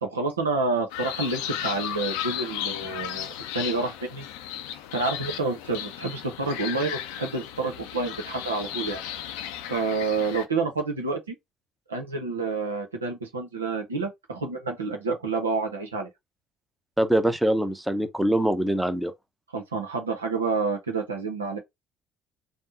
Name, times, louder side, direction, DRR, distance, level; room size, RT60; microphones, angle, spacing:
voice 1, 0.0-4.3 4.9-9.0 9.7-11.4 11.9-16.1 19.5-21.6, right 3 dB, 85° right, 0.7 m, -29 dB
sound 1, 0.9-10.5, left 10 dB, 70° left, 0.4 m, -35 dB
voice 2, 17.0-19.1, right 1 dB, 5° right, 0.8 m, -23 dB
3.5 x 2.1 x 3.9 m
figure-of-eight pair, 55°, 0 cm